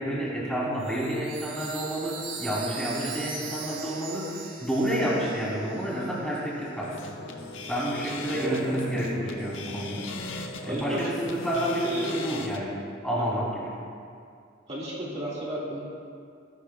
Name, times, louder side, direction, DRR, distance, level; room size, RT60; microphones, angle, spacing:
voice 1, 0.0-7.1 7.7-12.7 13.0-13.7, equal, 5° left, -7 dB, 3.2 m, -29 dB
Chime, 0.8-6.3, right 5 dB, 80° right, 3.2 m, -40 dB
sound 1, 6.8-12.6, left 2 dB, 75° left, 1.0 m, -38 dB
voice 2, 10.6-11.0 11.8-12.4 13.2-13.3 14.7-15.8, right 1 dB, 30° right, -7 dB, 2.0 m, -33 dB
22.5 x 12.0 x 2.4 m, 2.3 s
head